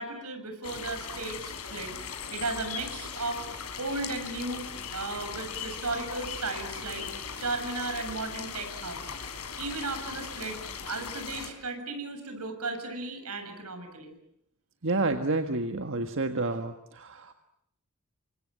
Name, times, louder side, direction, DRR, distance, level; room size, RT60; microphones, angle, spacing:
voice 1, 0.0-3.5 3.8-7.1 7.4-9.0 9.6-10.6 10.9-14.1, right 3 dB, 90° right, 7 dB, 7.4 m, -35 dB
sound 1, 0.6-11.5, left 6 dB, 85° left, 4.3 m, -39 dB
voice 2, 14.8-17.3, right 2 dB, 60° right, 6 dB, 1.6 m, -29 dB
30.0 x 25.5 x 7.8 m, 0.74 s
head